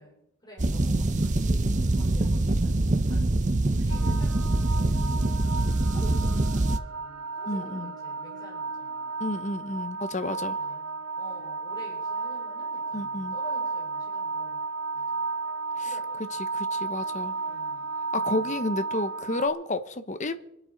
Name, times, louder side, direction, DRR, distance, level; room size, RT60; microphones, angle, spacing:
voice 1, 0.0-3.4 3.7-5.5 5.9-9.2 10.6-14.6 14.9-15.2 15.8-16.2 17.3-18.6, equal, 20° left, 4.8 m, -49 dB
sound 1, 0.6-6.8, right 2 dB, 35° right, 0.8 m, -24 dB
sound 2, 3.9-19.5, right 4 dB, 75° right, 1.2 m, -33 dB
voice 2, 7.5-7.9 9.2-10.6 12.9-13.4 15.8-15.9 16.5-17.3 18.1-20.4, left 2 dB, 35° left, 1.0 m, -31 dB
25.5 x 8.6 x 5.2 m
head